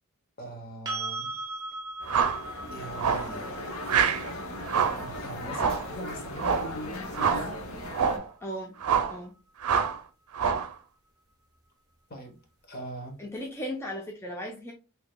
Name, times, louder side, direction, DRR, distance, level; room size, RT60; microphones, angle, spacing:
voice 1, 0.4-1.3 2.7-3.4 5.0-7.6 12.1-12.4 12.7-13.2, right 1 dB, 40° left, 1.0 m, -40 dB
sound 1, 0.8-8.7 11.5-11.6, right 3 dB, 15° right, 1.0 m, -40 dB
sound 2, 2.0-8.2, left 1 dB, 70° left, 0.8 m, -38 dB
sound 3, 2.1-2.4 3.0-3.3 3.9-4.2 4.7-5.0 5.5-5.9 6.4-6.7 7.1-7.5 7.9-8.3 8.8-9.2 9.6-10.0 10.3-10.7, right 6 dB, 80° right, 0.5 m, -26 dB
voice 2, 8.4-8.8 9.1-9.3 13.2-14.7, equal, 10° left, 0.5 m, -36 dB
4.9 x 2.7 x 2.2 m
head